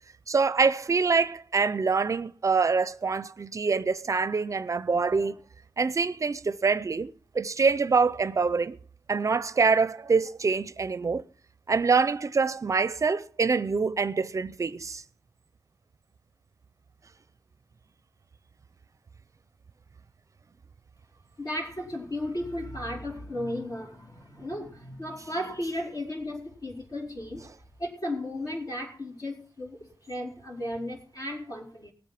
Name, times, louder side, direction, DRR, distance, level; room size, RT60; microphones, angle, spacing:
voice 1, 0.3-5.4 5.8-8.8 9.1-11.2 11.7-15.0, right 4 dB, 45° right, 0.5 m, -25 dB
voice 2, 21.4-27.5 27.8-31.9, left 1 dB, 55° left, 4.7 m, -35 dB
19.0 x 8.2 x 5.9 m
wide cardioid pair, 105°, 8 cm